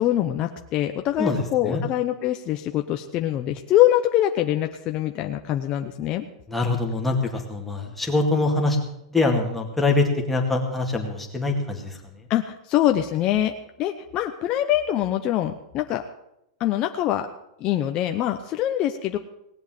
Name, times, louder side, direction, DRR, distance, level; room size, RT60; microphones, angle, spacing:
voice 1, 0.0-6.2 12.3-13.5 13.8-16.0 16.6-17.3 17.6-19.2, left 12 dB, 30° left, 5 dB, 0.8 m, -24 dB
voice 2, 1.2-1.8 6.5-12.0, left 2 dB, 5° left, 1 dB, 2.2 m, -24 dB
18.5 x 8.0 x 7.6 m, 0.81 s
supercardioid pair, 150°, 3 cm